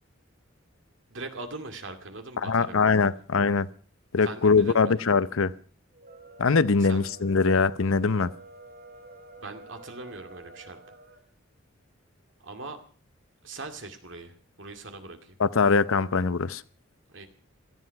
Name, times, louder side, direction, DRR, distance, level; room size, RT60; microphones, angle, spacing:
voice 1, 1.1-3.1 4.2-4.9 6.8-7.1 9.4-10.8 12.4-12.8 13.4-15.4 17.1-17.3, right 3 dB, 60° right, 2.4 m, -41 dB
voice 2, 2.4-3.7 4.1-5.5 6.4-8.3 15.4-16.6, left 4 dB, 75° left, 0.7 m, -22 dB
sound 1, 5.9-11.2, right 2 dB, 45° right, 2.1 m, -48 dB
17.5 x 13.0 x 5.8 m
head